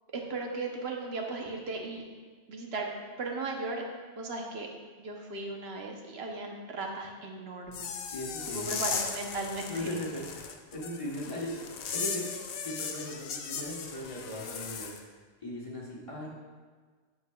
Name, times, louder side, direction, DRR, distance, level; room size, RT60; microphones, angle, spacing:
voice 1, 0.1-2.0 2.5-2.9 3.2-3.8 4.2-4.7 5.0-8.1 8.5-9.9 16.1-16.2, right 3 dB, 70° right, 1 dB, 1.0 m, -36 dB
sound 1, 7.7-15.0, left 6 dB, 65° left, 0.8 m, -37 dB
voice 2, 8.1-8.8 9.7-12.3 12.6-16.3, left 1 dB, 30° left, -4 dB, 1.2 m, -38 dB
8.3 x 6.8 x 2.3 m, 1.5 s
omnidirectional pair, 1.1 m